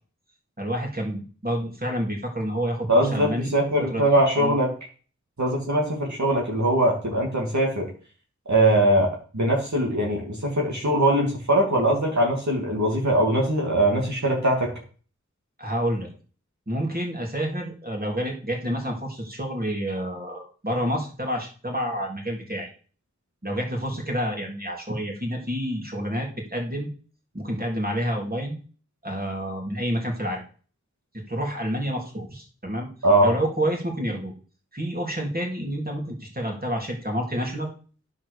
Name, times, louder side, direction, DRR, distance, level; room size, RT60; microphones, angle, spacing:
voice 1, 0.6-3.5 3.8-4.6 15.6-16.1 16.7-22.7 23.4-26.9 27.3-28.6 29.0-30.4 31.1-32.9 33.2-34.3 34.7-37.7, equal, 30° right, 0 dB, 3.2 m, -29 dB
voice 2, 2.9-4.7 5.4-7.9 8.5-14.7 33.0-33.3, right 1 dB, 70° right, -1 dB, 2.6 m, -21 dB
9.8 x 5.4 x 6.6 m, 0.40 s
wide cardioid pair, 45°, 29 cm